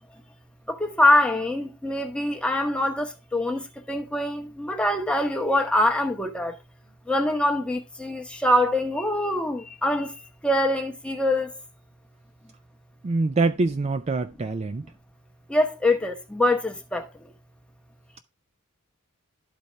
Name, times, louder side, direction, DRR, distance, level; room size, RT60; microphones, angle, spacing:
voice 1, 0.7-6.6 7.1-11.6 15.5-17.1, left 1 dB, 5° left, 0.8 m, -24 dB
voice 2, 13.0-14.9, right 3 dB, 30° right, 0.4 m, -25 dB
11.5 x 4.1 x 3.2 m
head